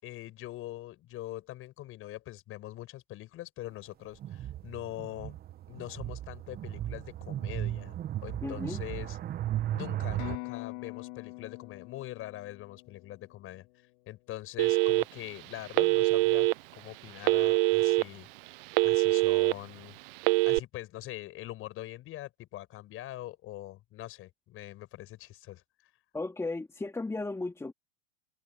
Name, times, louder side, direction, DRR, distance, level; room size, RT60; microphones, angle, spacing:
voice 1, 0.0-5.4 5.7-9.2 9.7-13.7 14.1-18.3 18.8-20.0 20.5-25.6, left 15 dB, 40° left, 6.6 m, -43 dB
sound 1, 4.2-10.4, right 13 dB, 30° right, 1.2 m, -36 dB
voice 2, 8.4-8.8 26.1-27.7, left 3 dB, 10° left, 2.8 m, -35 dB
sound 2, 10.2-14.0, left 30 dB, 55° left, 3.6 m, -44 dB
Telephone, 14.6-15.3 15.7-16.5 17.2-18.0 18.5-19.5 20.2-20.6, right 25 dB, 55° right, 0.8 m, -24 dB
hypercardioid pair, 115°, 33 cm